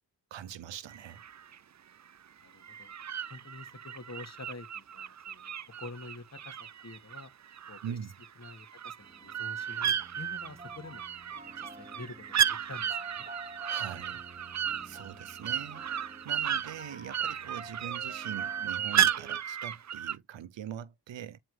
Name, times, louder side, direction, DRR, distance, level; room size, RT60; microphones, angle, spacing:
voice 1, 0.3-1.2 7.8-8.1 13.6-14.2 14.8-15.9 16.2-21.4, right 9 dB, 85° right, 1.0 m, -42 dB
sound 1, 0.9-1.6 2.6-7.9 8.2-20.2, right 9 dB, 40° right, 0.6 m, -34 dB
voice 2, 2.4-3.0 3.3-7.3 7.7-8.0 8.4-11.0 11.6-13.3, left 3 dB, 35° left, 2.8 m, -47 dB
sound 2, 9.0-19.4, right 1 dB, 20° right, 2.1 m, -50 dB
8.9 x 4.3 x 3.5 m
cardioid pair, 60°, 43 cm